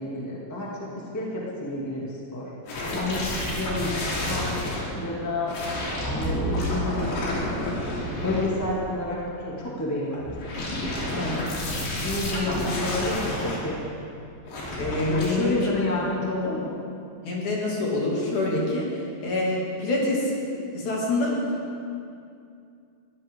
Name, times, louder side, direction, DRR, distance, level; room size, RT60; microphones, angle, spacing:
voice 1, 0.0-2.5 2.8-4.5 4.9-5.5 6.1-7.5 8.2-10.6 11.6-13.8 15.0-16.8, left 2 dB, 5° left, -5 dB, 1.6 m, -30 dB
sound 1, 2.7-4.8 5.5-8.9 10.2-13.6 14.5-15.3, left 1 dB, 75° left, 5.1 m, -29 dB
voice 2, 14.8-15.7 17.2-18.8 19.2-20.5 20.7-21.3, left 2 dB, 50° left, -4 dB, 3.8 m, -26 dB
21.5 x 15.5 x 3.8 m, 2.5 s
omnidirectional pair, 4.6 m